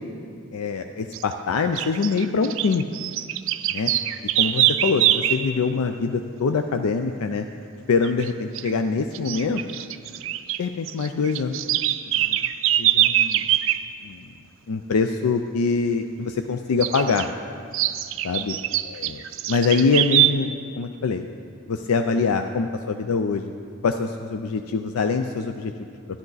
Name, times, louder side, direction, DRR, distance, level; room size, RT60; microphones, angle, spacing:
voice 1, 0.5-2.8 3.7-3.9 4.4-7.5 7.9-9.6 10.6-11.6 12.2-12.5 12.8-13.5 14.0-14.2 14.7-17.3 18.2-18.6 18.8-19.2 19.5-20.5 20.8-21.2 21.7-23.5 23.8-25.7, left 4 dB, 85° left, 6 dB, 0.4 m, -24 dB
sound 1, 1.1-1.3 1.8-5.5 8.0-8.3 8.6-8.7 9.1-10.6 10.9-13.8 16.8-17.3 17.7-20.3, right 13 dB, 60° right, 0.4 m, -23 dB
12.5 x 10.5 x 4.0 m, 2.3 s
head